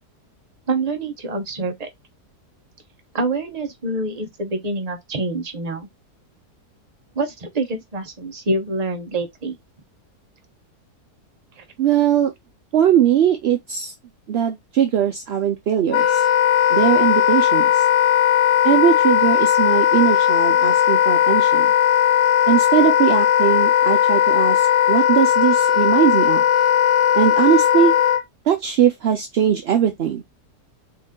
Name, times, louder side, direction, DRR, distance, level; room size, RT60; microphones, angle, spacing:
voice 1, 0.7-1.9 3.1-5.9 7.1-9.6 11.6-11.7, right 2 dB, 30° right, 0.8 m, -26 dB
voice 2, 11.8-12.3 12.7-13.9 14.3-16.2 16.7-17.9 18.6-21.7 22.5-26.4 27.1-27.9 28.5-30.2, right 9 dB, 65° right, 0.6 m, -20 dB
Wind instrument woodwind instrument, 15.9-28.2, left 10 dB, 90° left, 1.2 m, -17 dB
4.3 x 2.7 x 3.7 m
omnidirectional pair, 1.7 m